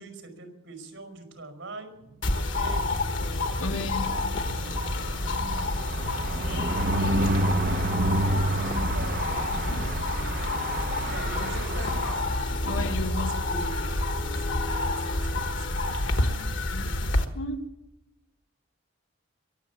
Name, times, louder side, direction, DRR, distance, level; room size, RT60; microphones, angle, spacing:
voice 1, 0.0-2.0 2.3-3.0 4.1-7.0 8.1-9.4 10.1-10.5 10.9-11.9 13.2-13.9 14.2-15.7, right 3 dB, 75° right, 6 dB, 5.2 m, -44 dB
sound 1, 2.2-17.2, left 2 dB, 60° left, 1.4 m, -28 dB
voice 2, 3.6-4.1 12.5-13.3 17.3-17.7, left 2 dB, 75° left, 3 dB, 1.9 m, -33 dB
sound 2, 4.0-12.8 13.2-13.4 13.6-13.7 14.0-14.3, right 1 dB, 45° right, 1.0 m, -30 dB
23.0 x 8.4 x 7.2 m, 0.91 s
head